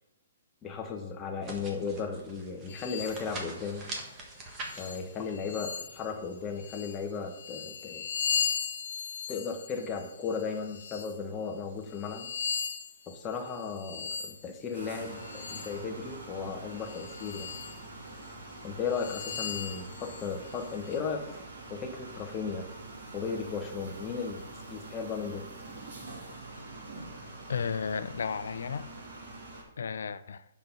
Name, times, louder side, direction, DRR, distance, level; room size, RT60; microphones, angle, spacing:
voice 1, 0.6-3.9 4.8-8.0 9.3-12.3 13.1-17.5 18.6-21.4 21.7-22.7 23.1-24.4 24.7-25.5, left 5 dB, 15° left, 1.1 m, -35 dB
sound 1, 1.4-7.2, right 2 dB, 20° right, 1.3 m, -45 dB
sound 2, 2.7-3.3 3.9-4.0 4.5-6.1 6.6-11.2 11.8-15.8 16.7-17.8 18.3-18.4 18.9-21.0, left 7 dB, 60° left, 1.2 m, -38 dB
sound 3, 14.7-29.6, right 2 dB, 65° right, 3.2 m, -45 dB
voice 2, 27.5-28.9 29.8-30.4, left 6 dB, 80° left, 0.6 m, -33 dB
6.7 x 6.0 x 5.2 m
hypercardioid pair, 165°, 0 cm